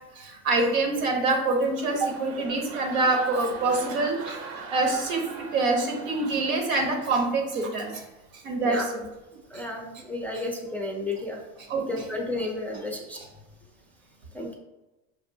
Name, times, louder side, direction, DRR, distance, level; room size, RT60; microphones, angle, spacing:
voice 1, 0.2-4.4 4.7-8.0 8.4-8.8 11.7-12.1, right 3 dB, 90° right, 2 dB, 1.1 m, -25 dB
sound 1, 1.4-7.3 7.7-8.0, right 4 dB, 65° right, 0.8 m, -42 dB
voice 2, 9.5-11.4 11.9-13.2 14.3-14.5, left 1 dB, 5° left, 0 dB, 0.4 m, -32 dB
6.0 x 2.5 x 2.6 m, 1.0 s
supercardioid pair, 95°, 39 cm